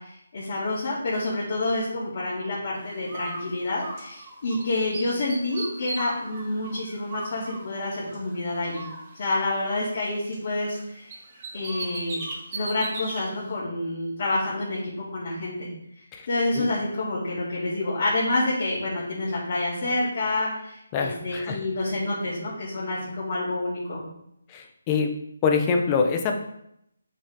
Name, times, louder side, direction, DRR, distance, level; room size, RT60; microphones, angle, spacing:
voice 1, 0.0-8.9 9.1-11.2 11.5-12.2 12.5-15.7 16.3-24.1, left 2 dB, 45° left, -9 dB, 2.9 m, -28 dB
Bird, 3.1-4.6 4.9-8.4 8.7-10.8 11.1-13.2, right 2 dB, 30° right, 2.2 m, -38 dB
voice 2, 20.9-21.6 24.5-25.1 25.4-26.4, left 5 dB, 20° left, 3 dB, 0.9 m, -24 dB
7.9 x 5.8 x 3.8 m, 0.77 s
figure-of-eight pair, 160°, 0 cm